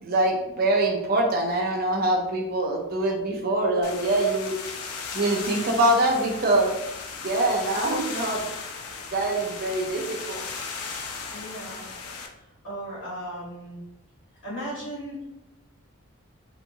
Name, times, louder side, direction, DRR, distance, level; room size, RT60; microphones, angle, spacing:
voice 1, 0.0-4.5 5.1-6.7 7.2-8.4 9.1-10.4, right 1 dB, 45° right, 0 dB, 0.5 m, -24 dB
sound 1, 3.8-12.3, left 5 dB, 85° left, 0.4 m, -36 dB
voice 2, 11.3-11.9 12.3-13.8 14.4-15.3, equal, 55° left, -10 dB, 1.4 m, -37 dB
2.9 x 2.4 x 2.6 m, 0.93 s
head